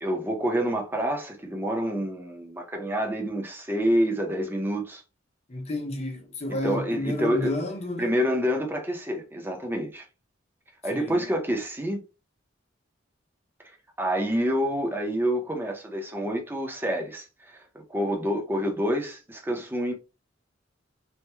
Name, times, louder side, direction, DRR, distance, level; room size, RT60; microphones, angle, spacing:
voice 1, 0.0-5.0 6.5-7.5 8.0-10.0 10.8-12.0 14.0-17.6 17.9-19.9, equal, 10° right, 0.6 m, -27 dB
voice 2, 5.5-8.1 10.9-11.3, left 1 dB, 35° left, 0.8 m, -31 dB
3.4 x 2.1 x 3.0 m
head